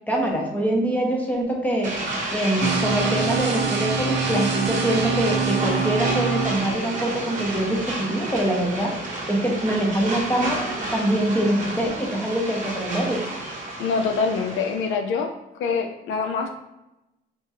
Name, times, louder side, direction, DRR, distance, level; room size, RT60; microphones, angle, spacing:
voice 1, 0.1-1.9 2.3-9.0 9.3-13.2, right 1 dB, 10° left, -2 dB, 1.0 m, -24 dB
sound 1, 1.8-14.9, right 2 dB, 40° right, 1.0 m, -31 dB
sound 2, 2.6-6.6, right 5 dB, 65° right, 0.6 m, -25 dB
voice 2, 13.8-15.3 15.6-16.5, left 5 dB, 80° left, 5 dB, 0.4 m, -25 dB
3.6 x 2.8 x 2.8 m, 0.95 s
cardioid pair, 90°, 20 cm